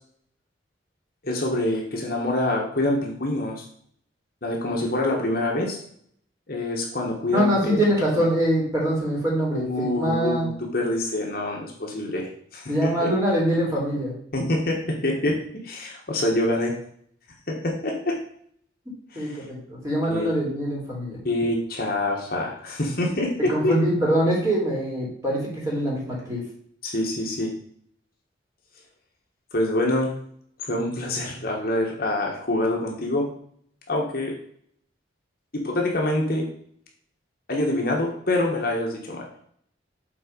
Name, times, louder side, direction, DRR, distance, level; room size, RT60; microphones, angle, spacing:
voice 1, 1.2-3.6 4.4-5.8 6.5-7.8 9.5-13.1 14.3-16.7 17.5-18.2 19.1-19.4 20.1-20.3 21.2-23.7 26.8-27.5 29.5-30.2 30.7-33.3 33.9-34.3 35.5-36.5 37.5-39.3, left 1 dB, 50° left, -1 dB, 1.5 m, -26 dB
voice 2, 7.3-10.5 12.7-14.1 19.1-21.2 23.5-26.4, equal, 15° right, -5 dB, 2.9 m, -24 dB
7.6 x 4.0 x 5.3 m, 0.64 s
head